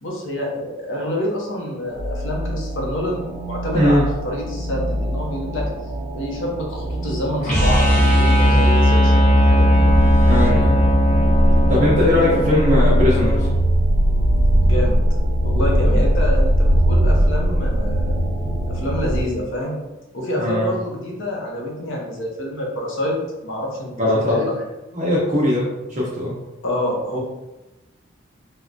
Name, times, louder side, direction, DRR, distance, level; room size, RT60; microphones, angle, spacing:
voice 1, 0.0-5.7 6.1-9.8 14.6-14.9 15.4-18.2 18.7-19.8 20.1-23.2 23.4-24.5 26.6-27.2, left 1 dB, 70° left, -1 dB, 0.7 m, -27 dB
sound 1, 1.8-19.2, equal, 75° right, 0.8 m, -21 dB
voice 2, 3.7-4.0 10.2-10.8 11.7-13.5 20.3-20.7 24.0-24.4 24.9-26.3, left 1 dB, 35° right, -6 dB, 0.6 m, -19 dB
sound 2, 7.4-13.5, equal, 35° left, 0.7 m, -17 dB
3.4 x 2.2 x 2.5 m, 1.0 s
head